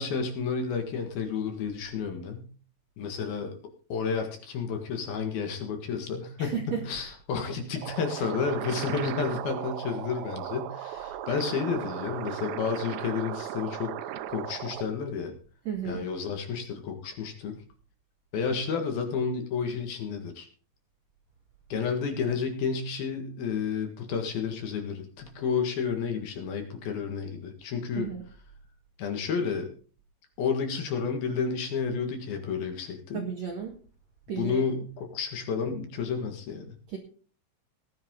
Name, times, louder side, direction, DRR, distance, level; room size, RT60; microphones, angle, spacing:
voice 1, 0.0-2.5 3.0-3.6 3.9-15.3 15.9-17.6 18.3-20.5 21.7-28.1 29.0-29.7 30.4-33.2 34.4-36.8, left 6 dB, 60° left, 4 dB, 3.2 m, -31 dB
voice 2, 6.4-6.8 15.6-16.0 27.9-28.2 33.1-33.7 34.3-34.6 36.9-37.0, right 7 dB, 60° right, 2 dB, 1.8 m, -33 dB
sound 1, 7.8-14.8, right 11 dB, 75° right, 2.9 m, -36 dB
18.0 x 11.0 x 3.8 m, 0.40 s
omnidirectional pair, 5.3 m